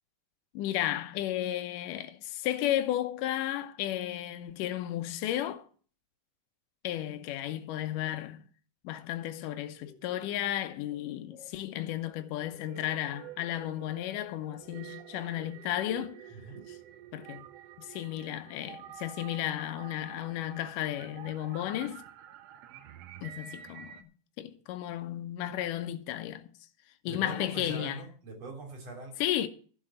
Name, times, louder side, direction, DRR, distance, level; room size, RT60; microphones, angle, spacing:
voice 1, 0.5-5.6 6.8-8.4 8.8-16.2 17.1-17.5 17.8-22.0 23.2-24.1 24.4-26.5 27.0-28.0 29.2-29.5, left 12 dB, 80° left, 2.4 m, -33 dB
sound 1, 9.8-13.0 13.3-16.3, left 1 dB, ahead, 5.2 m, -59 dB
sound 2, 12.6-24.0, right 10 dB, 75° right, 1.5 m, -49 dB
voice 2, 27.0-29.2, right 3 dB, 50° right, 4.3 m, -42 dB
11.5 x 6.7 x 7.7 m
omnidirectional pair, 3.7 m